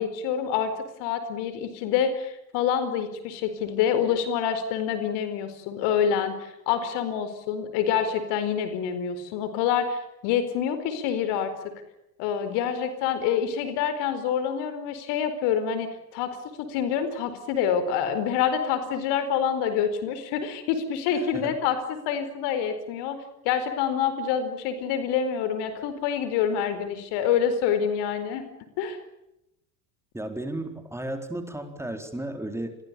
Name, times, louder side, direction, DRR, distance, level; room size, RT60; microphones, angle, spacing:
voice 1, 0.0-11.5 12.2-28.5 28.8-29.0, left 8 dB, 55° left, 11 dB, 4.6 m, -27 dB
voice 2, 30.1-32.8, right 1 dB, 5° right, 6 dB, 4.1 m, -34 dB
29.5 x 22.5 x 7.0 m, 0.86 s
figure-of-eight pair, 70°, 49 cm